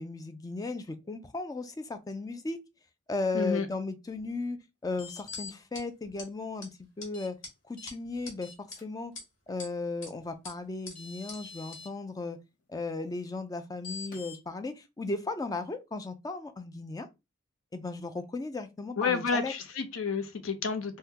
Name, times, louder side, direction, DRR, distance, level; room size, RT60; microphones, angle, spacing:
voice 1, 0.0-2.6 3.1-4.6 4.8-6.7 7.0-7.4 7.7-8.5 8.8-9.1 9.5-12.4 12.7-17.1 17.7-19.5, left 3 dB, 20° left, 0.3 m, -36 dB
voice 2, 3.3-3.7 19.0-21.0, left 5 dB, 85° left, 0.6 m, -30 dB
sound 1, 4.9-5.5 7.1-7.3 7.8-7.9 8.4-8.8 10.5-10.6 10.9-11.9 13.8-14.4, left 5 dB, 40° left, 0.8 m, -44 dB
sound 2, 5.3-5.4 5.7-5.8 6.2-6.3 6.6-6.7 7.0-7.1 7.4-7.5 7.9-8.3 8.7-8.8 9.2-9.7 10.0-10.1 10.4-10.5 10.9-11.0 11.3-11.4 11.7-11.8, left 3 dB, 65° left, 1.3 m, -43 dB
3.5 x 2.2 x 2.8 m
head